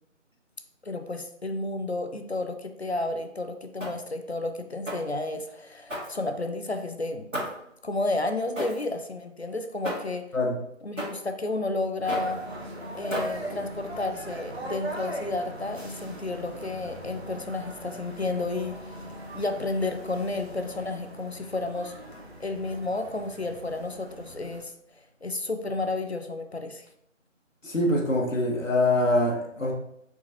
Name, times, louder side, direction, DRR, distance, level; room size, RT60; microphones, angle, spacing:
voice 1, 0.8-7.3 7.8-10.2 10.8-12.4 12.9-19.0 19.3-21.9 22.4-24.7 25.2-26.9, left 2 dB, 55° left, 6 dB, 0.5 m, -31 dB
sound 1, 3.8-4.2 4.9-5.2 5.9-6.6 7.3-7.7 8.5-8.9 9.8-10.2 11.0-11.3 12.1-12.4 13.1-13.5, equal, 75° right, 1.8 m, -34 dB
sound 2, 12.0-24.6, equal, 55° right, 1.0 m, -39 dB
voice 2, 27.6-29.7, left 1 dB, 80° left, -1 dB, 1.2 m, -24 dB
4.9 x 3.8 x 2.8 m, 0.76 s
figure-of-eight pair, 175°, 38 cm